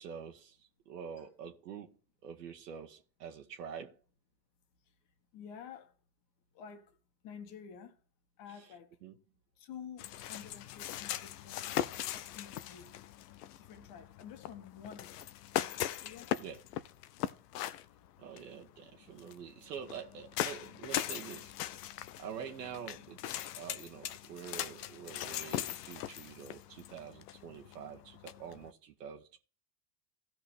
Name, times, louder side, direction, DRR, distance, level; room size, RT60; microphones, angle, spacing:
voice 1, 0.0-2.0 2.2-4.0 9.0-9.1 16.4-16.6 18.2-21.9 22.2-29.4, right 7 dB, 80° right, 1.1 m, -46 dB
voice 2, 5.3-6.0 6.5-7.0 7.2-8.0 8.4-9.0 9.6-11.7 12.1-13.1 13.6-15.8 16.0-16.3, left 7 dB, 60° left, 1.9 m, -50 dB
sound 1, 10.0-28.7, left 12 dB, 75° left, 0.7 m, -40 dB
16.0 x 6.0 x 3.5 m
hypercardioid pair, 80°, 48 cm